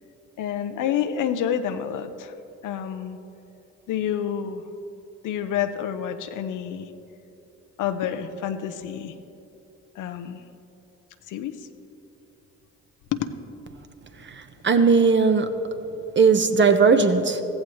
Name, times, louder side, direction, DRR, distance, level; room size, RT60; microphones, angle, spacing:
voice 1, 0.4-2.3 2.6-3.2 3.9-4.6 5.2-6.9 7.8-9.1 9.9-10.4 11.3-11.7 13.1-13.3, left 9 dB, 70° left, 0.8 m, -28 dB
voice 2, 14.6-15.5 16.2-17.4, right 5 dB, 35° right, 1.0 m, -17 dB
15.0 x 15.0 x 3.1 m
supercardioid pair, 60°, 32 cm